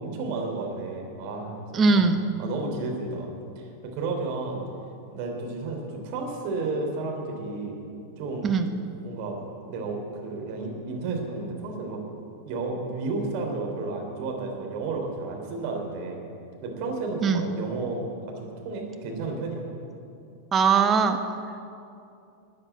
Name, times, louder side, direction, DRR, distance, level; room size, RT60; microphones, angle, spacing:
voice 1, 0.0-2.0 2.4-3.3 3.6-4.6 5.1-7.8 8.2-8.5 9.0-12.0 12.4-16.2 16.6-18.0 18.4-19.6, right 3 dB, 45° right, 1 dB, 3.5 m, -32 dB
voice 2, 1.7-2.3 8.4-8.7 17.2-17.5 20.5-21.2, right 5 dB, 20° right, 6 dB, 1.1 m, -20 dB
14.0 x 9.6 x 8.3 m, 2.6 s
figure-of-eight pair, 90°, 0 cm